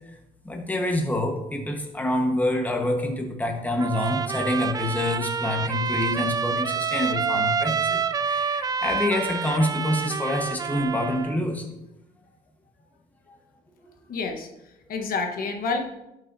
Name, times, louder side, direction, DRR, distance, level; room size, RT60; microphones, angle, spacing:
voice 1, 0.4-11.7 13.3-13.4, left 1 dB, 10° left, 2 dB, 1.3 m, -27 dB
Trumpet, 3.8-11.4, right 6 dB, 20° right, 0.3 m, -27 dB
voice 2, 14.1-15.8, left 4 dB, 60° left, 4 dB, 1.2 m, -29 dB
11.5 x 6.5 x 2.8 m, 0.89 s
cardioid pair, 110°, 17 cm